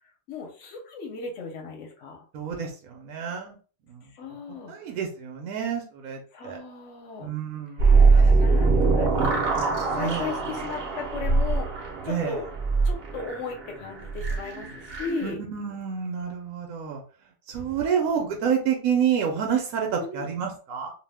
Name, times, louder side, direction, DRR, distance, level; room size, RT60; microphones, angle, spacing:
voice 1, 0.3-2.2 4.1-4.7 6.3-7.3 8.0-9.4 9.9-12.5 12.8-15.4 18.0-18.4 20.0-20.3, left 5 dB, 60° left, 2 dB, 1.0 m, -36 dB
voice 2, 2.3-3.6 3.9-4.0 4.7-6.6 7.2-8.3 10.0-10.3 12.1-12.4 15.2-17.0 17.5-20.9, right 7 dB, 75° right, 2 dB, 1.0 m, -29 dB
sound 1, 7.8-15.3, right 4 dB, 50° right, 0.7 m, -22 dB
2.6 x 2.1 x 3.3 m, 0.39 s
omnidirectional pair, 1.5 m